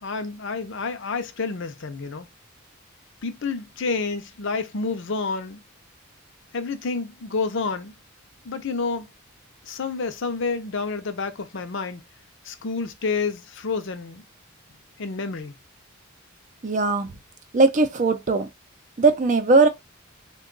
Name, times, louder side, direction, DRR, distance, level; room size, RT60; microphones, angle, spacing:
voice 1, 0.0-2.3 3.2-5.6 6.5-7.9 8.4-9.1 9.6-12.0 12.4-14.2 15.0-15.5, left 4 dB, 60° left, 0.6 m, -29 dB
voice 2, 16.6-17.1 17.5-18.5 19.0-19.7, right 3 dB, 35° right, 0.5 m, -19 dB
3.6 x 2.3 x 3.8 m
head